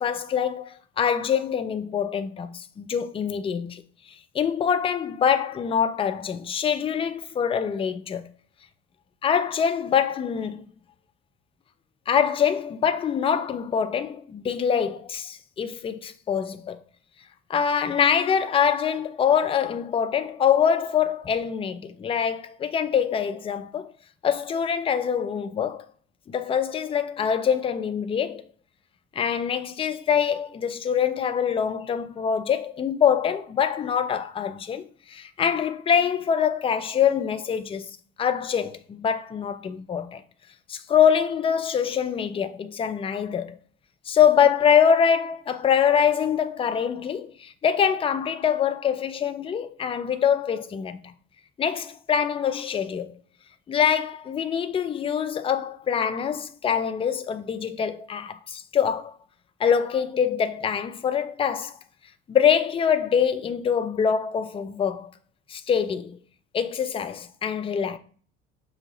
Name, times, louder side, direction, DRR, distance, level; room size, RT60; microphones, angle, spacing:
voice 1, 0.0-3.8 4.3-8.3 9.2-10.6 12.1-16.8 17.5-23.9 24.2-25.9 26.3-28.4 29.1-34.8 35.1-37.9 38.2-40.2 40.7-43.6 44.1-51.0 51.6-53.1 53.7-59.2 59.6-61.8 62.3-65.1 65.5-66.2 66.5-68.0, left 8 dB, 15° left, 0.4 m, -24 dB
5.4 x 2.3 x 3.0 m
figure-of-eight pair, 60°, 32 cm